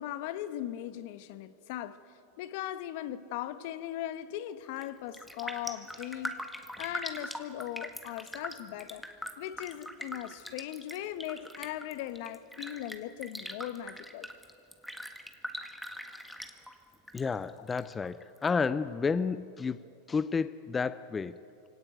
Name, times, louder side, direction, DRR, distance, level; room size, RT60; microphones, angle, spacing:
voice 1, 0.0-2.0 2.4-6.3 6.8-9.0 9.4-14.3 17.6-17.7, left 12 dB, 60° left, 1.1 m, -39 dB
Raindrop, 4.6-4.9 5.1-17.2 17.5-18.5 18.9-19.0, equal, ahead, 1.7 m, -42 dB
voice 2, 17.1-19.8 20.1-21.4, left 5 dB, 20° left, 0.5 m, -31 dB
24.0 x 17.5 x 9.1 m
hypercardioid pair, 100°, 0 cm